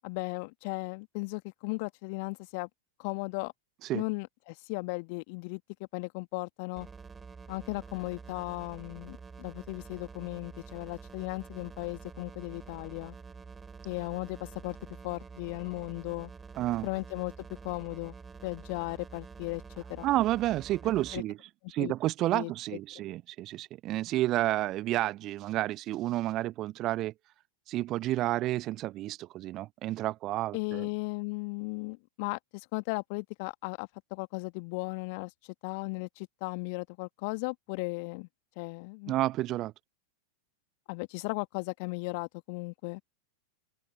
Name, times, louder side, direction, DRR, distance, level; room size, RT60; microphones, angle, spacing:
voice 1, 0.0-2.7 3.0-3.5 3.9-6.9 7.5-13.2 13.8-14.8 15.0-16.3 16.8-17.3 17.6-18.1 18.4-20.1 21.1-21.2 21.8-21.9 22.3-22.5 30.5-38.3 38.6-39.1 40.9-43.0, left 31 dB, 45° left, 2.2 m, -36 dB
sound 1, 6.8-21.2, right 5 dB, 15° right, 4.7 m, -48 dB
voice 2, 16.6-16.9 20.0-21.4 21.7-27.1 27.7-30.9 39.1-39.7, right 15 dB, 35° right, 0.9 m, -30 dB
open air
figure-of-eight pair, 90°, 0 cm